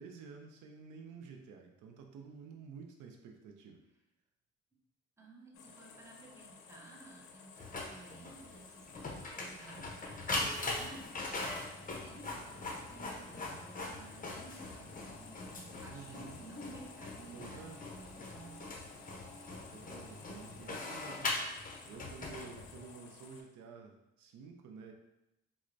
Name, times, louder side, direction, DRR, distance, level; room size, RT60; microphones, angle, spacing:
voice 1, 0.0-3.8 15.9-16.4 17.3-17.8 19.4-21.3 21.9-24.9, right 5 dB, 85° right, 4 dB, 0.5 m, -51 dB
voice 2, 5.2-18.6, right 2 dB, 10° right, -1 dB, 0.7 m, -55 dB
sound 1, 5.5-23.4, left 5 dB, 75° left, 0.5 m, -56 dB
Printer, 7.6-22.9, left 2 dB, 30° left, 0.6 m, -41 dB
4.3 x 2.1 x 2.5 m, 0.90 s
cardioid pair, 90°, 30 cm